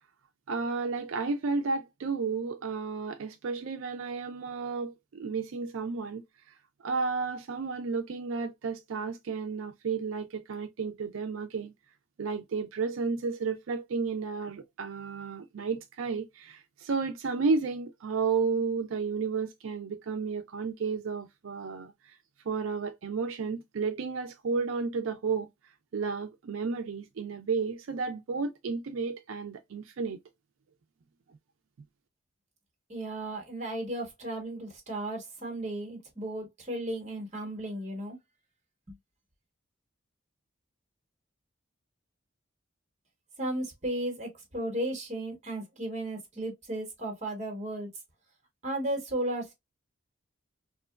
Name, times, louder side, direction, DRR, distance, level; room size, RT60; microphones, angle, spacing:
voice 1, 0.5-6.2 6.8-11.7 12.2-21.9 22.5-25.5 25.9-30.2, right 4 dB, 90° right, 0.4 m, -32 dB
voice 2, 32.9-38.2 38.9-39.0 43.4-47.9 48.6-49.5, right 1 dB, 35° right, 1.1 m, -35 dB
2.9 x 2.2 x 2.2 m
head